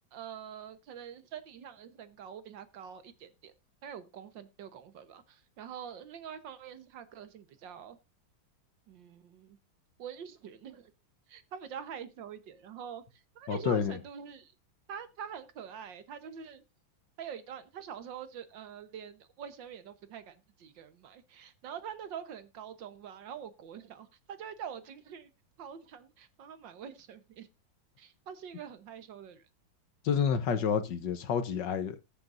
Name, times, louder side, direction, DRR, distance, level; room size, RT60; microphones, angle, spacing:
voice 1, 0.1-3.5 3.8-8.0 8.9-9.6 10.0-10.9 11.3-13.0 13.3-14.5 14.9-16.6 17.2-25.3 25.6-27.5 28.0-29.4, right 8 dB, 70° right, 1.7 m, -45 dB
voice 2, 13.5-14.0 30.0-32.0, left 7 dB, 65° left, 1.5 m, -29 dB
19.5 x 6.9 x 2.5 m
omnidirectional pair, 2.2 m